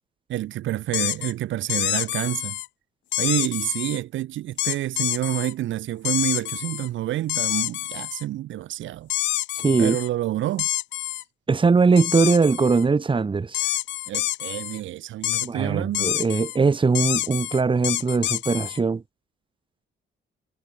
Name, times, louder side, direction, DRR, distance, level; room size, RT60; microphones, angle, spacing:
voice 1, 0.3-2.6 3.2-9.1 9.8-10.7 14.1-16.1, right 14 dB, 75° right, 0.7 m, -28 dB
sound 1, 0.9-1.3 1.7-2.7 3.1-4.0 4.6-5.5 6.0-6.9 7.3-8.2 9.1-10.1 10.6-11.2 12.0-12.8 13.5-14.8 15.2-15.5 15.9-16.6 16.9-18.8, left 15 dB, 70° left, 0.4 m, -27 dB
voice 2, 9.5-10.0 11.5-13.7 15.4-19.0, right 4 dB, 25° right, 1.3 m, -21 dB
cardioid pair, 90°, 20 cm